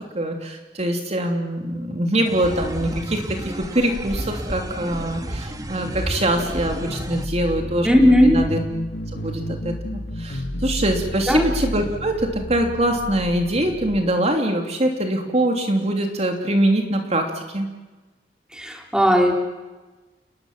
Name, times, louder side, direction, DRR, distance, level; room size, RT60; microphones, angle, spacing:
voice 1, 0.1-8.6 9.1-17.7, right 1 dB, 40° right, 3 dB, 3.0 m, -23 dB
sound 1, 2.3-7.3, equal, 20° right, 1.7 m, -32 dB
sound 2, 4.9-14.0, equal, 75° left, 2.2 m, -32 dB
voice 2, 7.8-8.4 11.3-11.5 18.5-19.3, equal, 5° right, 2 dB, 3.5 m, -16 dB
30.0 x 20.5 x 7.4 m, 1.2 s
head